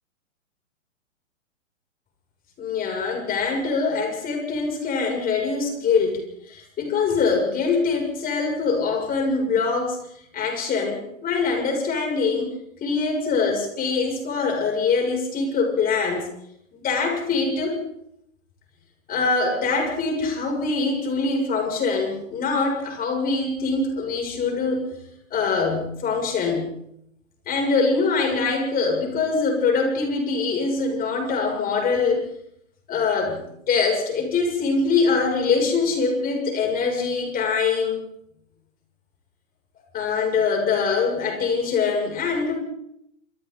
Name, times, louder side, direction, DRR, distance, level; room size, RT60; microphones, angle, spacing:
voice 1, 2.6-10.0 10.3-12.5 12.8-16.3 16.7-17.8 19.1-24.9 25.3-26.7 27.5-32.3 32.9-38.0 39.9-42.6, left 4 dB, 20° left, 2 dB, 6.9 m, -23 dB
27.5 x 26.0 x 4.0 m, 0.75 s
hypercardioid pair, 125°, 40 cm